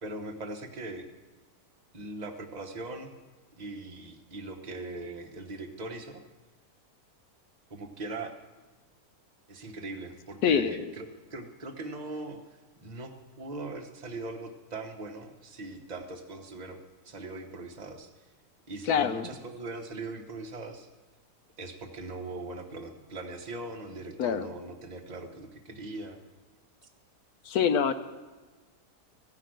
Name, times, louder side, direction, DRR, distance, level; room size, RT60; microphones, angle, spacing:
voice 1, 0.0-1.1 1.9-3.1 3.6-6.2 7.7-8.3 9.5-12.4 12.8-13.1 13.4-16.8 17.0-18.1 18.7-20.9 21.6-26.2, right 2 dB, 30° right, 4 dB, 1.0 m, -40 dB
voice 2, 10.4-10.8 18.8-19.3 24.2-24.5 27.4-27.9, left 7 dB, 75° left, 9 dB, 1.1 m, -25 dB
16.0 x 5.9 x 7.7 m, 1.3 s
omnidirectional pair, 1.7 m